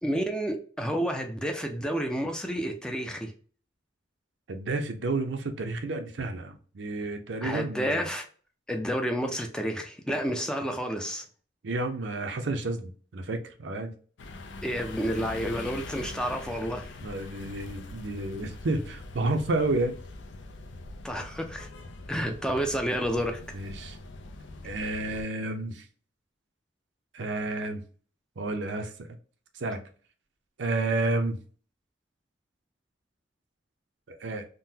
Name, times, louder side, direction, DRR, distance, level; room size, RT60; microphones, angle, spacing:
voice 1, 0.0-3.3 7.4-8.2 8.7-11.2 14.6-16.9 21.0-21.7 22.1-23.4, equal, 5° left, 0.4 m, -30 dB
voice 2, 4.5-8.0 11.6-13.9 17.0-20.0 23.5-24.0 24.6-25.8 27.1-27.8 28.4-29.1 29.6-29.8 30.6-31.4 34.1-34.5, right 2 dB, 70° right, 0.6 m, -30 dB
sound 1, 14.2-25.2, left 2 dB, 75° left, 0.5 m, -43 dB
3.7 x 2.1 x 2.7 m
head